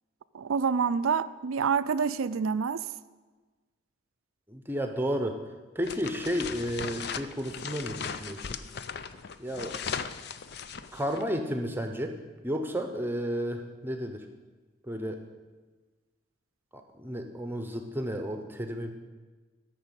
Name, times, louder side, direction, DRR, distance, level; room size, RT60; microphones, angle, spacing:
voice 1, 0.3-2.8, right 6 dB, 85° right, 15 dB, 0.5 m, -27 dB
voice 2, 4.5-5.4 5.7-8.5 9.4-9.8 10.9-12.2 12.4-14.3 14.8-15.2 16.7-18.9, equal, 10° right, 5 dB, 0.8 m, -32 dB
sound 1, 5.8-11.3, left 6 dB, 55° left, 0.5 m, -38 dB
12.5 x 6.1 x 8.2 m, 1.3 s
head